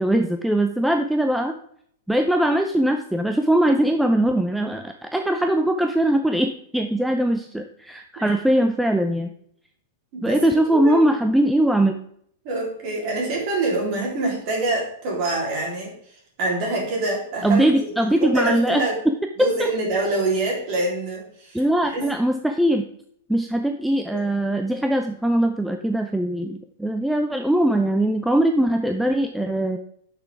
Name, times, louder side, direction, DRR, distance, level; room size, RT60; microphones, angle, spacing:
voice 1, 0.0-1.5 2.1-9.3 10.2-12.0 17.4-18.8 19.4-19.7 21.5-22.8 23.3-29.8, right 1 dB, ahead, 5 dB, 0.4 m, -21 dB
voice 2, 10.1-11.0 12.4-15.9 16.4-17.9 18.2-19.0 19.4-21.6 21.9-22.1 24.1-24.2, right 2 dB, 40° right, -2 dB, 3.5 m, -25 dB
9.7 x 6.1 x 3.5 m, 0.66 s
supercardioid pair, 155°, 0 cm